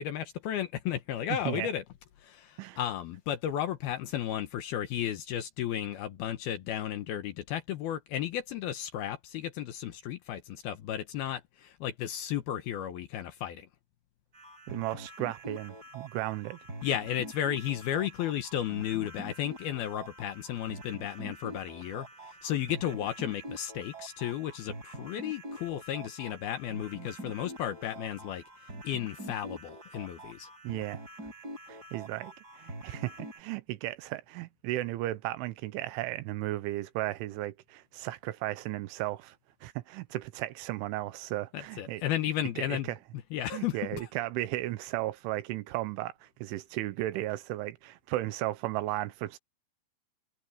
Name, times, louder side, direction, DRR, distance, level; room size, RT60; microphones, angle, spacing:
voice 1, 0.0-1.8 2.2-13.7 16.8-28.4 28.8-30.5 41.5-42.9 43.3-44.1, left 11 dB, 70° left, 2.6 m, -34 dB
sound 1, 14.3-33.4, right 1 dB, 20° right, 6.3 m, -45 dB
voice 2, 14.7-16.6 30.6-31.0 31.7-39.4 39.6-42.1 42.6-43.0 43.5-49.4, right 16 dB, 85° right, 3.5 m, -35 dB
omnidirectional pair, 5.4 m